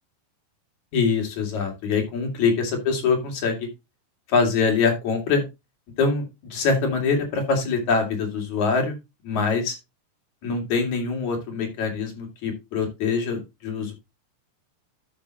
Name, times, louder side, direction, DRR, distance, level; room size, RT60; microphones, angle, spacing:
voice 1, 0.9-3.7 4.3-5.4 6.0-9.0 9.2-9.8 10.4-13.9, left 5 dB, 70° left, 3 dB, 3.6 m, -24 dB
12.5 x 6.1 x 2.9 m, 0.23 s
omnidirectional pair, 3.5 m